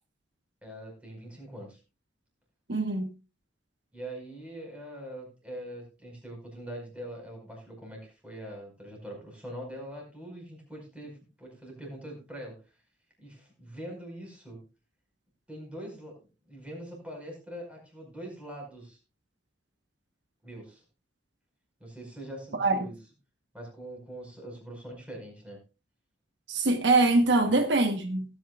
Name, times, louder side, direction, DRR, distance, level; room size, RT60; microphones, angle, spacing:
voice 1, 0.6-1.8 3.9-12.8 13.2-14.6 15.5-19.0 20.4-20.8 21.8-23.0 23.5-25.6 27.3-27.6, right 1 dB, 5° right, 5.1 m, -43 dB
voice 2, 2.7-3.1 22.6-22.7 26.5-28.2, right 2 dB, 70° right, 1.2 m, -23 dB
18.0 x 9.3 x 2.4 m
head